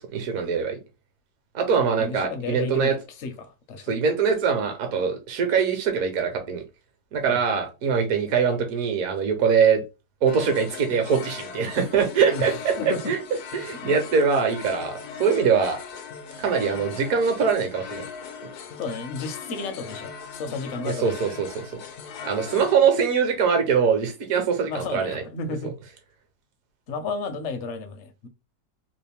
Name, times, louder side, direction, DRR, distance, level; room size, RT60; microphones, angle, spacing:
voice 1, 0.1-0.8 1.5-3.0 3.9-6.6 7.1-9.8 10.2-13.2 13.5-15.8 16.4-18.0 18.4-18.5 20.8-21.7 22.2-25.2, right 6 dB, 65° right, 1.2 m, -23 dB
voice 2, 2.0-2.9 3.2-3.9 7.3-7.4 12.3-13.1 13.6-13.8 18.8-21.2 24.7-25.7 26.9-28.3, left 4 dB, 60° left, 0.8 m, -33 dB
sound 1, 10.3-22.8, left 6 dB, 80° left, 1.1 m, -39 dB
3.1 x 2.5 x 3.4 m
omnidirectional pair, 1.7 m